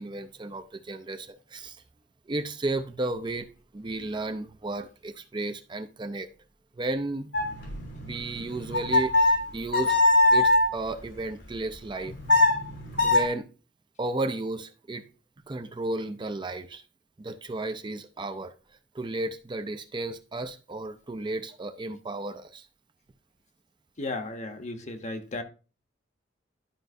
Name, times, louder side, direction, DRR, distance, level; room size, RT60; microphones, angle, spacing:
voice 1, 0.0-1.8 2.3-3.5 3.7-6.3 6.8-7.3 8.0-9.9 10.3-12.1 13.0-13.4 14.0-15.0 15.5-16.8 17.2-18.5 18.9-22.7, right 2 dB, 25° right, 0.5 m, -33 dB
sound 1, 7.3-10.7 12.0-13.2, left 2 dB, 90° left, 2.9 m, -22 dB
voice 2, 24.0-25.4, left 2 dB, 40° left, 0.9 m, -34 dB
12.0 x 5.2 x 2.6 m
head